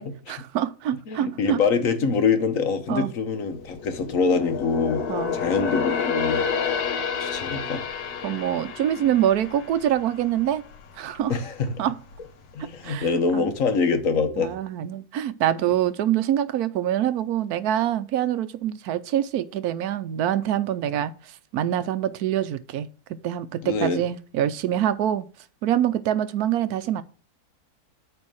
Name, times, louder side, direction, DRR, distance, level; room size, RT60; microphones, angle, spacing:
voice 1, 0.0-1.6 2.9-3.1 5.1-5.3 8.2-10.6 10.9-11.4 11.8-11.9 12.6-13.5 14.4-22.9 23.2-25.3 25.6-27.0, right 11 dB, 80° right, 1.1 m, -25 dB
voice 2, 1.1-5.0 5.3-6.4 7.2-7.8 11.3-11.8 12.5-14.6 23.6-24.0, left 5 dB, 60° left, 1.3 m, -24 dB
sound 1, 3.3-10.9 11.2-11.5 12.0-12.7 13.1-13.2, left 6 dB, 75° left, 1.5 m, -29 dB
8.9 x 3.5 x 6.2 m
omnidirectional pair, 1.6 m